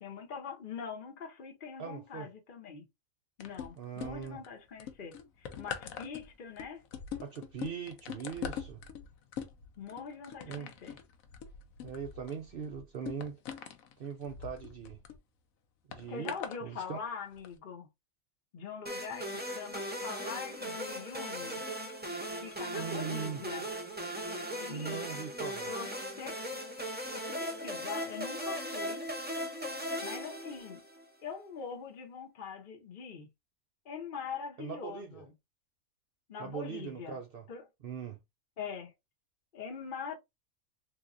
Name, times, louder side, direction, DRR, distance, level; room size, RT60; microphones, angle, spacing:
voice 1, 0.0-2.9 3.4-6.8 9.8-11.0 16.1-17.9 18.5-21.6 22.4-23.7 24.6-25.1 25.7-26.4 27.1-29.1 30.0-30.8 31.2-33.3 33.8-35.3 36.3-37.2 37.5-37.6 38.6-38.9 39.5-40.2, left 6 dB, 45° left, 0.8 m, -43 dB
voice 2, 1.8-2.3 3.8-4.4 7.2-8.8 10.4-10.7 11.8-13.4 14.0-15.0 15.9-16.4 16.6-17.0 22.7-23.4 24.7-25.7 34.6-35.2 36.4-37.5 37.8-38.2, right 7 dB, 65° right, 0.5 m, -40 dB
sound 1, 3.4-4.5 4.8-15.2 15.9-16.6 17.3-17.5, left 8 dB, 75° left, 1.1 m, -43 dB
sound 2, 18.9-31.0, equal, 10° right, 0.4 m, -38 dB
3.5 x 2.9 x 2.5 m
omnidirectional pair, 1.5 m